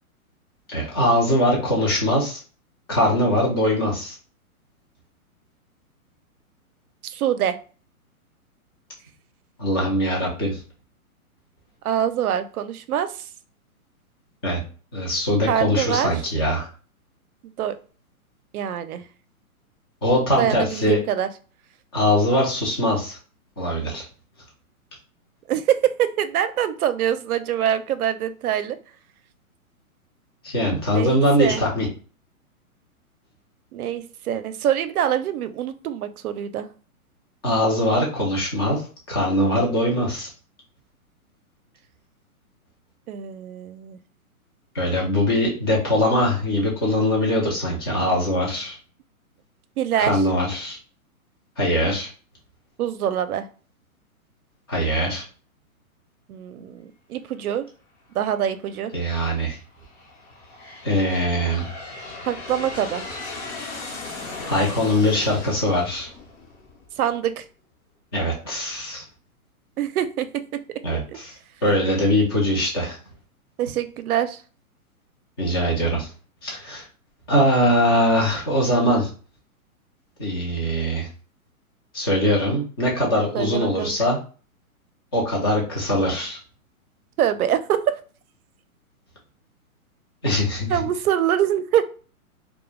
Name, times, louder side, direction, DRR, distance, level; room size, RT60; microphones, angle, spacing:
voice 1, 0.7-2.4 2.9-4.2 9.6-10.6 14.4-14.6 14.9-16.7 20.0-21.0 21.9-23.2 23.6-24.0 30.4-31.9 37.4-38.8 39.1-40.3 44.7-48.8 50.0-50.8 51.6-52.1 54.7-55.2 58.9-59.6 60.8-61.7 64.5-66.1 68.1-69.0 70.8-71.3 71.6-73.0 75.4-76.1 76.4-76.8 77.3-79.1 80.2-81.1 81.9-84.2 85.1-86.4 90.2-90.8, equal, 20° left, -3 dB, 0.4 m, -22 dB
voice 2, 7.0-7.6 11.8-13.1 15.5-16.1 17.4-17.7 18.5-19.0 20.4-21.3 25.5-28.8 30.9-31.6 33.7-36.7 43.1-44.0 49.8-50.1 52.8-53.5 56.3-57.7 58.2-58.9 62.3-63.0 67.0-67.4 69.8-70.3 71.1-71.2 73.6-74.4 83.3-83.9 87.2-88.0 90.7-91.8, right 10 dB, 75° right, 11 dB, 0.5 m, -24 dB
Aircraft, 58.3-58.8 59.5-67.1, left 3 dB, 50° left, 0.9 m, -37 dB
2.3 x 2.1 x 3.1 m, 0.38 s
hypercardioid pair, 140°, 44 cm